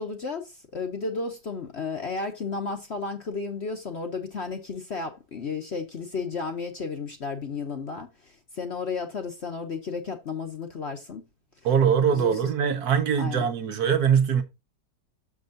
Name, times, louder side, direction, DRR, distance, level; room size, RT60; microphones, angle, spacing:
voice 1, 0.0-11.2 12.1-12.4 13.2-13.5, left 4 dB, 45° left, 1.0 m, -33 dB
voice 2, 11.6-14.4, right 7 dB, 60° right, 1.3 m, -22 dB
6.7 x 6.1 x 3.8 m
omnidirectional pair, 1.9 m